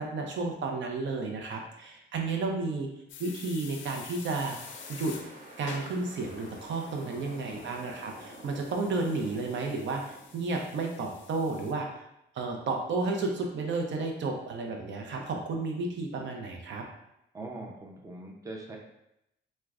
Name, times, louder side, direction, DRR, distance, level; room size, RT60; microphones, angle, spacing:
voice 1, 0.0-2.9 3.2-4.6 4.9-5.2 5.6-12.0 12.3-16.8, right 3 dB, 65° right, 2 dB, 0.6 m, -32 dB
sound 1, 3.1-11.7, left 6 dB, 70° left, 0.4 m, -49 dB
sound 2, 4.6-10.9, right 1 dB, 45° right, 1.0 m, -49 dB
voice 2, 7.0-7.7 17.3-18.8, right 2 dB, 15° right, 0 dB, 0.5 m, -43 dB
4.4 x 2.1 x 2.4 m, 0.83 s
cardioid pair, 90°, 20 cm